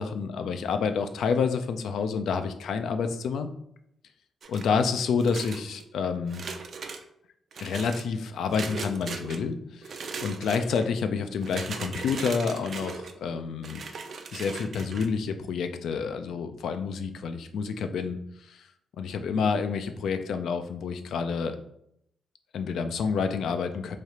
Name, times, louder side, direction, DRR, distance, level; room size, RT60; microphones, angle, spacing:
voice 1, 0.0-3.5 4.5-6.5 7.6-13.8 14.3-18.6 19.0-21.6 22.5-24.0, left 5 dB, 80° left, 8 dB, 0.3 m, -29 dB
sound 1, 4.4-4.8 5.2-5.8 6.3-7.0 7.5-8.0 8.5-9.4 9.8-10.8 11.4-13.1 13.6-15.1, right 5 dB, 60° right, 0.4 m, -38 dB
3.2 x 2.4 x 4.1 m, 0.74 s
cardioid pair, 85°, 0 cm